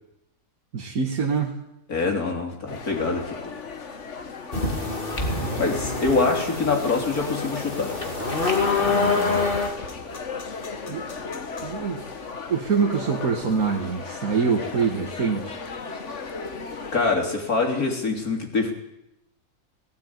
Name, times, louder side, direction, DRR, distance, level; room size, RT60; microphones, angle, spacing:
voice 1, 0.7-1.6 5.4-5.7 8.8-9.5 10.9-11.0 11.6-12.1 12.5-15.6, right 5 dB, 75° right, 1 dB, 2.0 m, -25 dB
voice 2, 1.9-3.6 5.6-8.0 16.9-18.7, left 3 dB, 85° left, 2 dB, 3.7 m, -24 dB
sound 1, 2.7-17.1, left 4 dB, 55° left, 1.8 m, -36 dB
sound 2, 4.5-9.7, left 4 dB, 40° left, 2.8 m, -26 dB
17.5 x 16.5 x 9.6 m, 0.84 s
omnidirectional pair, 1.5 m